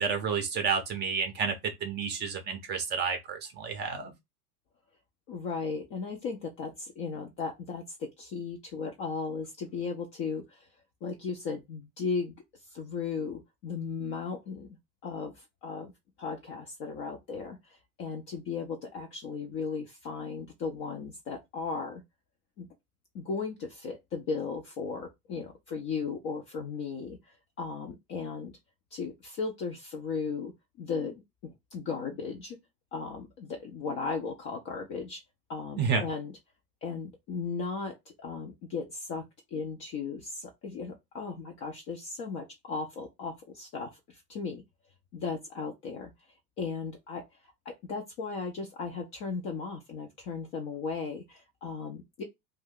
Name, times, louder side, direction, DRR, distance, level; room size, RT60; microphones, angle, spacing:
voice 1, 0.0-4.1 35.8-36.0, right 6 dB, 25° right, 0.5 m, -30 dB
voice 2, 5.3-10.7 11.0-12.4 12.7-14.7 15.0-15.9 16.2-22.0 22.6-22.7 23.1-28.5 28.9-32.6 32.9-35.2 35.5-36.4 36.8-39.2 39.5-44.6 45.1-46.1 46.6-47.2 47.7-52.2, left 5 dB, 30° left, 0.3 m, -36 dB
2.6 x 2.2 x 3.6 m
hypercardioid pair, 110°, 47 cm